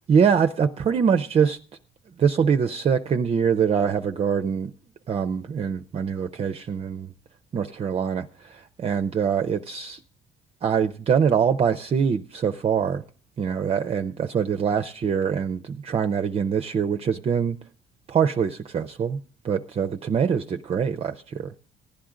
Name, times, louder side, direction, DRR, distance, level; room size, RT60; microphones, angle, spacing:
voice 1, 0.1-1.6 2.2-4.7 5.1-7.1 7.5-10.0 10.6-13.0 13.4-17.6 18.1-19.2 19.4-21.5, right 7 dB, 35° right, 0.5 m, -24 dB
15.5 x 10.0 x 3.7 m
cardioid pair, 110°, 17 cm